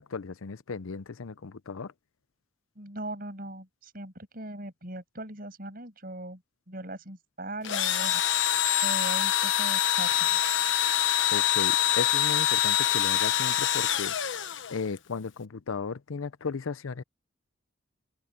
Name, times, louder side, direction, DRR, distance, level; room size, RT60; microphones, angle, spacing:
voice 1, 0.0-1.9 11.3-17.0, left 4 dB, 90° left, 0.6 m, -35 dB
voice 2, 2.8-6.4 6.7-8.5 8.8-10.4, right 1 dB, 45° right, 7.1 m, -40 dB
Engine / Drill, 7.6-15.0, left 11 dB, 65° left, 1.1 m, -25 dB
head